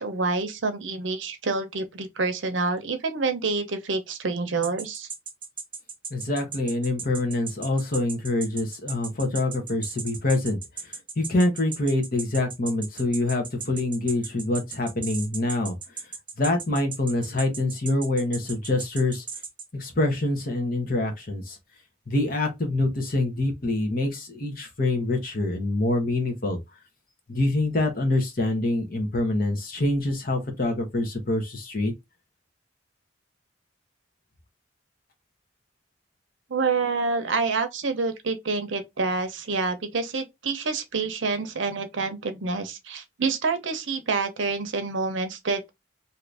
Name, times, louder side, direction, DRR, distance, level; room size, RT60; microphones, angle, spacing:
voice 1, 0.0-5.1 36.5-45.7, right 4 dB, 75° right, 0.7 m, -27 dB
sound 1, 4.6-19.7, right 5 dB, 25° right, 0.9 m, -36 dB
voice 2, 6.1-15.8 16.4-19.2 19.7-21.6 22.1-26.6 27.3-31.9, left 2 dB, 45° left, 0.9 m, -25 dB
2.8 x 2.5 x 3.2 m
head